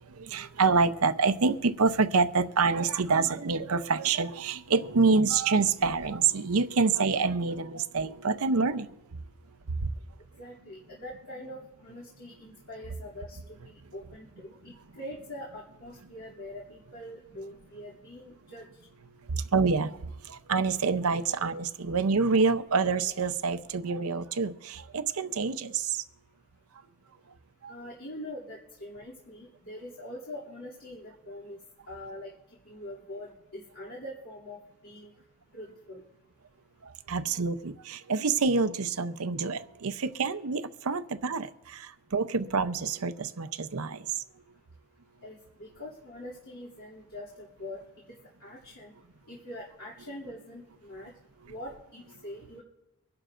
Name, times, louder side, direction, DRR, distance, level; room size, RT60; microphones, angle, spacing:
voice 1, 0.0-8.9 9.7-9.9 19.3-20.0 20.2-26.0 27.6-27.7 36.8-44.2, right 4 dB, 75° right, 11 dB, 0.7 m, -27 dB
voice 2, 10.4-18.7 27.7-31.6 31.9-32.3 32.6-34.6 34.8-35.1 35.5-36.0 45.2-47.8 48.4-48.9 49.3-51.1 51.5-52.6, left 1 dB, 70° left, -6 dB, 2.7 m, -43 dB
24.5 x 11.5 x 2.6 m, 0.94 s
head